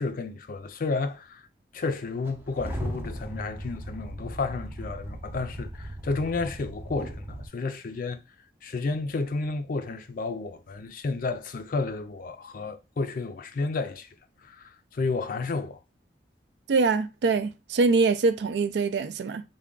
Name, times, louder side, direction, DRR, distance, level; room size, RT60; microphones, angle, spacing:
voice 1, 0.0-1.4 1.7-8.2 8.6-14.1 14.4-15.8, left 3 dB, 50° left, 0.4 m, -31 dB
sound 1, 2.3-7.5, equal, 10° right, 0.6 m, -37 dB
voice 2, 16.7-19.4, right 4 dB, 70° right, 0.4 m, -24 dB
3.4 x 2.2 x 3.7 m
head